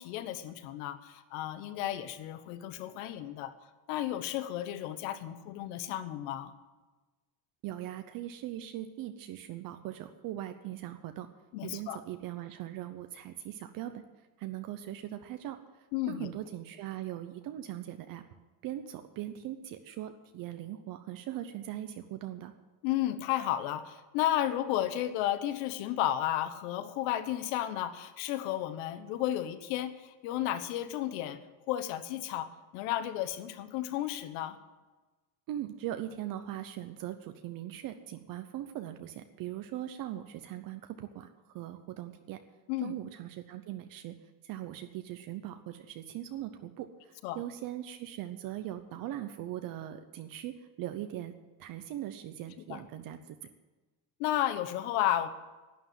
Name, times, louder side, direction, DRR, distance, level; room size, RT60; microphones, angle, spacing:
voice 1, 0.0-3.5 3.9-6.5 11.5-12.0 15.9-16.3 22.8-31.4 31.7-34.6 42.7-43.0 47.2-47.4 52.7-52.8 54.2-55.3, left 12 dB, 90° left, 12 dB, 1.2 m, -33 dB
voice 2, 7.6-11.3 11.6-14.0 14.4-15.6 16.1-18.2 18.6-22.5 35.5-42.4 42.8-44.2 44.4-51.3 51.6-53.4, right 12 dB, 50° right, 8 dB, 0.9 m, -40 dB
11.5 x 9.6 x 9.3 m, 1.2 s
cardioid pair, 160°, 44 cm